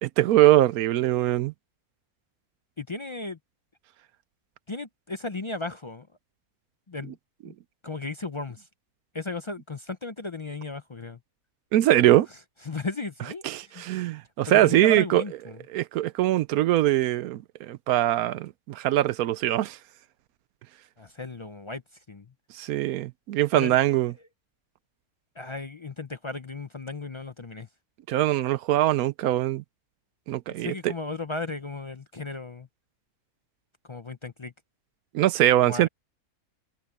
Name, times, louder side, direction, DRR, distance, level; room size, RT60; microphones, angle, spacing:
voice 1, 0.0-1.5 11.7-12.3 13.4-15.2 15.7-19.8 22.5-24.1 28.1-29.6 30.3-30.9 35.1-35.9, right 14 dB, 80° right, 1.0 m, -22 dB
voice 2, 2.8-3.4 4.7-6.1 6.9-7.2 7.4-7.5 7.8-8.7 9.1-11.2 12.6-14.0 14.4-15.6 21.0-21.8 22.1-22.3 23.5-23.8 25.4-27.7 30.5-32.7 33.9-34.5 35.7-35.9, left 3 dB, 40° left, 0.4 m, -35 dB
omnidirectional pair, 1.5 m